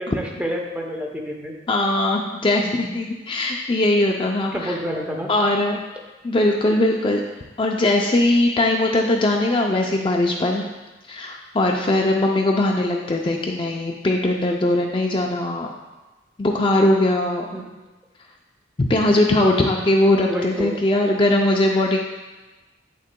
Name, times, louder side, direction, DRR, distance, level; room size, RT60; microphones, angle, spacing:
voice 1, 0.0-1.5 4.5-5.3 17.5-17.6 20.3-20.7, equal, 5° right, 0 dB, 0.7 m, -28 dB
voice 2, 1.7-4.7 5.3-5.8 6.2-7.2 7.6-10.6 11.1-15.7 16.4-17.5 18.8-22.0, left 1 dB, 30° left, 0 dB, 0.4 m, -20 dB
8.5 x 6.4 x 2.2 m, 1.1 s
head